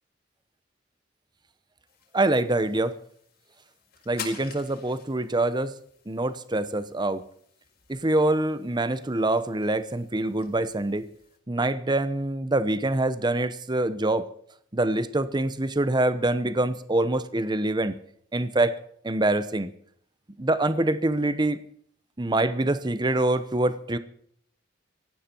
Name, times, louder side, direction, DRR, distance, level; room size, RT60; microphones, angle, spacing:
sound 1, 1.9-11.4, left 7 dB, 55° left, 4.8 m, -48 dB
voice 1, 2.1-3.0 4.1-5.7 6.1-7.2 7.9-11.0 11.5-14.3 14.7-18.0 18.3-18.8 19.0-19.7 20.4-21.6 22.2-24.0, right 2 dB, 25° right, 13 dB, 0.9 m, -25 dB
17.5 x 15.0 x 4.5 m, 0.65 s
head